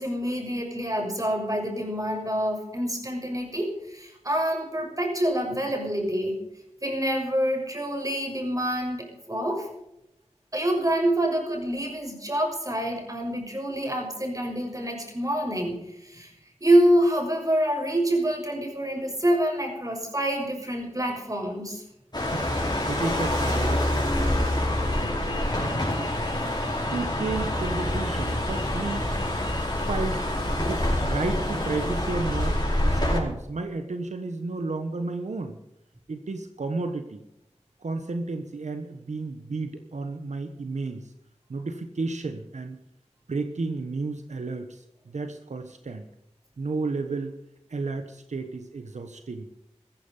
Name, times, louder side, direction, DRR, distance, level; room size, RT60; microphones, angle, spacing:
voice 1, 0.0-6.4 6.8-9.7 10.5-16.3 16.6-21.8, right 1 dB, 30° right, 2 dB, 6.4 m, -26 dB
sound 1, 22.1-33.2, left 1 dB, 40° left, 5.3 m, -26 dB
voice 2, 22.9-26.1 26.9-29.1 29.7-30.2 30.6-35.6 36.1-37.2 37.8-41.1 41.5-42.8 43.3-46.1 46.6-47.3 47.7-49.5, right 3 dB, 90° right, 7 dB, 1.2 m, -32 dB
15.0 x 15.0 x 5.4 m, 0.85 s
wide cardioid pair, 60°, 12 cm